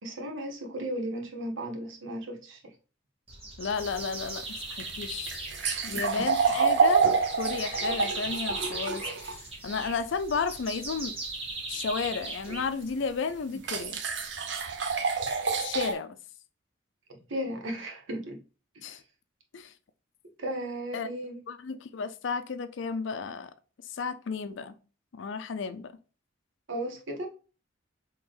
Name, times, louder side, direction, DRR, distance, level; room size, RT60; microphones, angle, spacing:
voice 1, 0.0-2.6 5.9-6.3 17.1-18.4 20.4-21.4 26.7-27.3, right 1 dB, 75° right, 1.0 m, -35 dB
sound 1, 3.3-13.1, right 2 dB, 30° right, 1.2 m, -39 dB
voice 2, 3.6-5.5 5.8-7.1 7.4-11.1 11.7-14.0 15.6-16.2 18.8-19.0 19.5-19.7 20.9-21.1 21.5-23.5 23.9-24.7 25.1-25.9, left 5 dB, 70° left, 0.4 m, -33 dB
sound 2, 3.8-9.4 12.5-12.6 13.6-15.9, right 5 dB, 60° right, 0.6 m, -28 dB
3.7 x 3.0 x 3.0 m
head